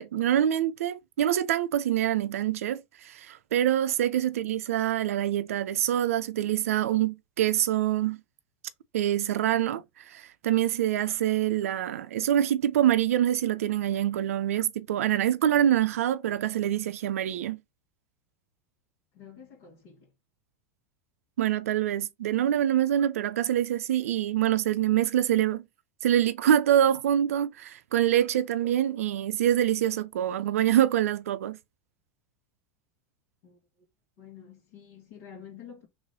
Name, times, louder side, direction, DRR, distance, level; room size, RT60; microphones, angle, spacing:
voice 1, 0.0-8.2 8.9-17.6 21.4-25.6 26.0-31.6, right 11 dB, 80° right, 0.4 m, -25 dB
voice 2, 19.1-20.1 33.4-33.6 34.2-35.9, left 8 dB, 70° left, 1.6 m, -48 dB
3.1 x 3.0 x 3.9 m
hypercardioid pair, 95°, 8 cm